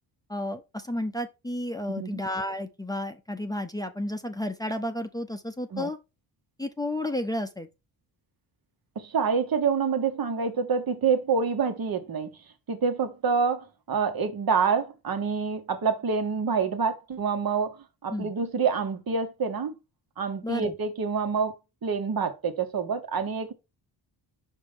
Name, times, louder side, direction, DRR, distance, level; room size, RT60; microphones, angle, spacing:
voice 1, 0.3-6.0 6.6-7.7 18.1-18.3 20.4-20.8, left 1 dB, 10° left, 0.9 m, -32 dB
voice 2, 1.9-2.2 5.7-5.9 8.9-12.3 12.7-17.8 18.0-19.7 20.2-23.5, right 5 dB, 50° right, 1.5 m, -27 dB
5.3 x 5.2 x 3.5 m
cardioid pair, 75°, 46 cm